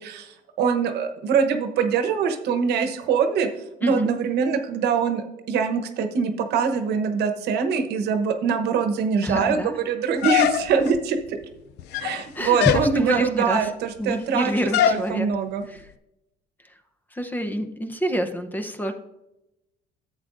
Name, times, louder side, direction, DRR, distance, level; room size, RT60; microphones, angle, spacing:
voice 1, 0.0-3.5 3.8-11.4 12.0-14.5 14.9-15.6, right 6 dB, 75° right, 7 dB, 1.0 m, -23 dB
voice 2, 9.2-9.8 12.4-13.7 14.0-15.3 15.7-15.9 16.6-16.8 17.1-18.9, equal, 10° left, 8 dB, 0.7 m, -27 dB
sound 1, 10.2-11.0 11.8-12.2 12.6-12.9 14.7-15.1, left 10 dB, 80° left, 0.4 m, -21 dB
11.0 x 7.9 x 2.6 m, 0.92 s
cardioid pair, 110°, 17 cm